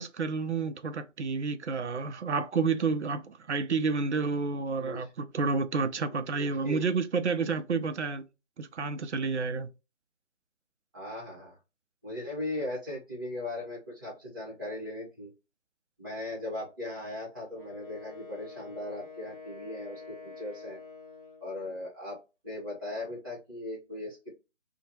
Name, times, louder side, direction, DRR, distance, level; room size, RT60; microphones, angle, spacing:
voice 1, 0.0-8.2 8.6-9.7, right 4 dB, 65° right, 0.5 m, -30 dB
voice 2, 4.8-5.1 6.1-6.9 10.9-11.6 12.0-15.3 16.0-20.8 21.4-22.2 22.4-24.3, left 1 dB, 15° right, 1.0 m, -38 dB
Wind instrument woodwind instrument, 17.5-21.6, left 4 dB, 45° left, 0.8 m, -47 dB
2.7 x 2.1 x 2.9 m
figure-of-eight pair, 150°, 37 cm